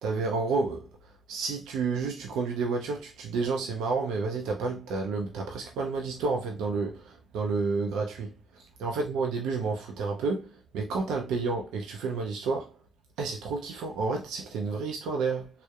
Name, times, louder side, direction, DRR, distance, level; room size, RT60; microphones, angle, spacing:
voice 1, 0.0-0.9 1.3-8.3 8.8-12.7 13.2-15.5, right 4 dB, 80° right, 0.4 m, -30 dB
2.8 x 2.0 x 2.3 m
supercardioid pair, 55°, 0 cm